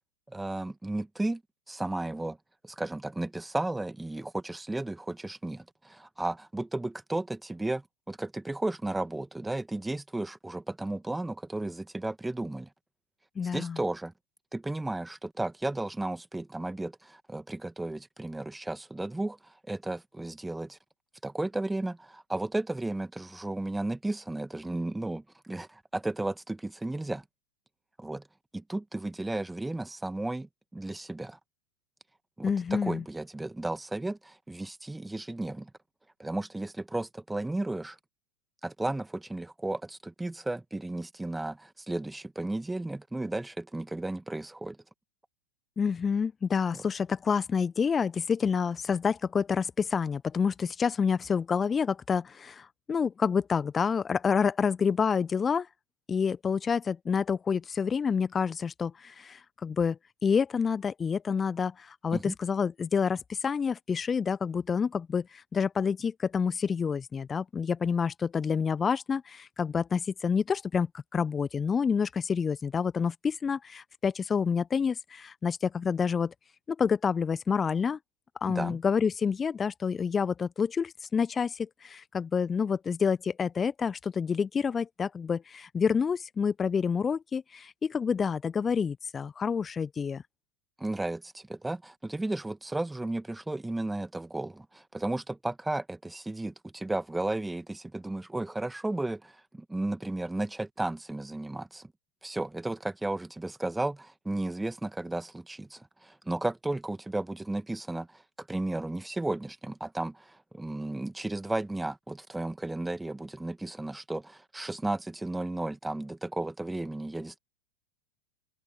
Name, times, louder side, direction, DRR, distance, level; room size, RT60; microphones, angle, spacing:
voice 1, 0.3-1.4 1.7-2.4 2.6-12.7 13.5-14.1 14.5-20.8 21.2-27.2 28.0-28.3 28.5-31.4 32.4-35.7 36.2-38.0 38.6-44.8 46.7-46.8 62.1-62.3 78.5-78.8 90.8-101.9 102.2-117.4, right 2 dB, 5° right, 2.1 m, -34 dB
voice 2, 13.4-13.8 32.4-33.0 45.8-55.7 56.1-70.9 71.1-76.3 76.7-78.0 78.4-90.2, left 6 dB, 20° left, 1.3 m, -28 dB
figure-of-eight pair, 90°, 0 cm